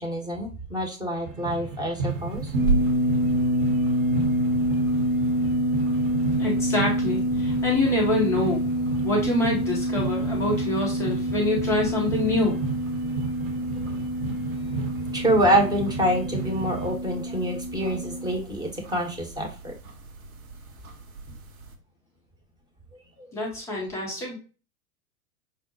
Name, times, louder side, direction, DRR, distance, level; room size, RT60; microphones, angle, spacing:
voice 1, 0.0-2.5 15.1-19.7, equal, 10° right, 1 dB, 0.7 m, -26 dB
sound 1, 1.2-16.9, right 4 dB, 35° right, 0.8 m, -34 dB
sound 2, 2.1-21.8, right 3 dB, 65° right, 0.8 m, -38 dB
sound 3, 2.5-18.3, equal, 80° right, 1.8 m, -27 dB
voice 2, 6.4-8.7 9.0-12.6 23.3-24.4, left 2 dB, 5° left, -3 dB, 0.3 m, -26 dB
5.3 x 2.0 x 2.5 m, 0.34 s
figure-of-eight pair, 95°, 46 cm